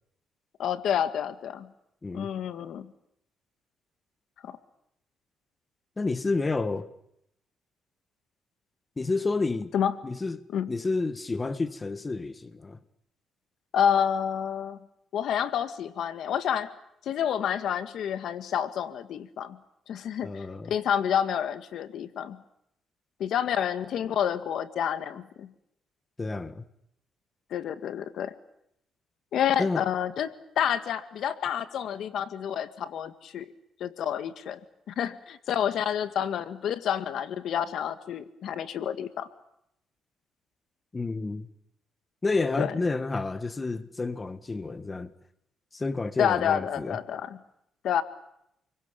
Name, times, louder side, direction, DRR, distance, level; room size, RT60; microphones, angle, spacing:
voice 1, 0.6-1.7 2.1-2.9 4.4-4.6 9.7-9.9 10.5-10.7 13.7-14.8 15.1-16.7 17.0-19.6 19.9-22.4 23.2-25.5 27.5-28.3 29.3-33.5 33.8-34.6 34.9-39.3 42.6-42.7 46.2-47.4 47.8-48.0, left 9 dB, 70° left, 1.8 m, -29 dB
voice 2, 6.0-6.9 9.0-9.7 10.0-10.4 10.7-12.8 20.2-20.7 26.2-26.6 29.6-29.9 40.9-41.5 42.2-45.1 45.7-47.0, left 3 dB, 25° left, 1.8 m, -30 dB
29.5 x 23.0 x 7.1 m
cardioid pair, 90°, 0 cm